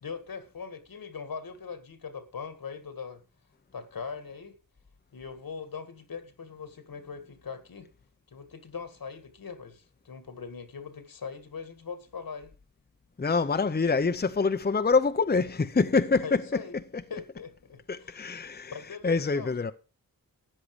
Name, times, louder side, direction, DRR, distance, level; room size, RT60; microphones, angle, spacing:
voice 1, 0.0-3.2 3.7-4.6 5.1-7.9 8.3-12.5 16.2-16.7 17.1-19.7, left 5 dB, 80° left, 2.0 m, -41 dB
voice 2, 13.2-16.4 17.9-18.7 19.0-19.7, left 4 dB, 30° left, 0.7 m, -25 dB
13.5 x 8.5 x 4.9 m
wide cardioid pair, 60°, 35 cm